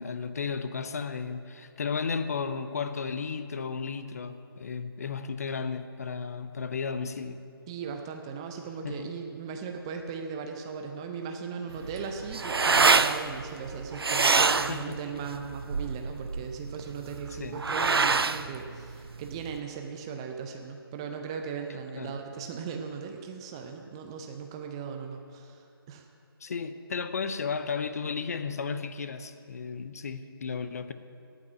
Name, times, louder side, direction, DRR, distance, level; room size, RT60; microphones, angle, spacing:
voice 1, 0.0-7.4 8.8-9.1 14.7-15.0 17.4-17.6 22.0-22.2 26.4-30.9, left 5 dB, 40° left, 11 dB, 0.6 m, -34 dB
voice 2, 7.7-26.1, right 6 dB, 10° right, 4 dB, 0.5 m, -38 dB
sound 1, 11.7-19.6, right 4 dB, 75° right, 0.5 m, -26 dB
18.0 x 6.0 x 8.9 m, 2.7 s
figure-of-eight pair, 155°, 13 cm